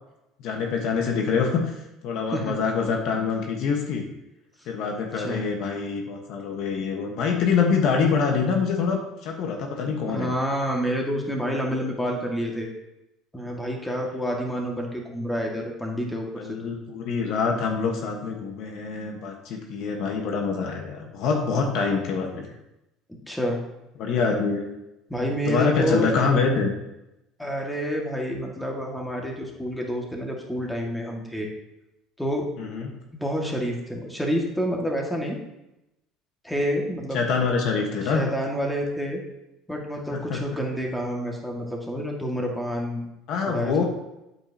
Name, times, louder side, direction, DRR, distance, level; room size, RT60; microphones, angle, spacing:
voice 1, 0.4-1.8 2.0-4.0 4.7-10.3 16.4-22.5 24.0-24.7 25.5-26.7 32.7-32.8 37.1-38.3 40.1-40.4 43.3-43.8, left 5 dB, 65° left, 2 dB, 1.3 m, -25 dB
voice 2, 2.3-2.6 4.6-4.7 5.1-5.4 10.1-12.7 13.3-16.6 23.1-23.6 25.1-26.1 27.4-31.5 32.2-32.5 33.1-35.4 36.4-37.3 38.0-39.2 39.7-43.1 43.5-43.8, equal, 5° left, 0 dB, 1.9 m, -28 dB
8.8 x 7.7 x 2.9 m, 0.92 s
supercardioid pair, 85°, 0 cm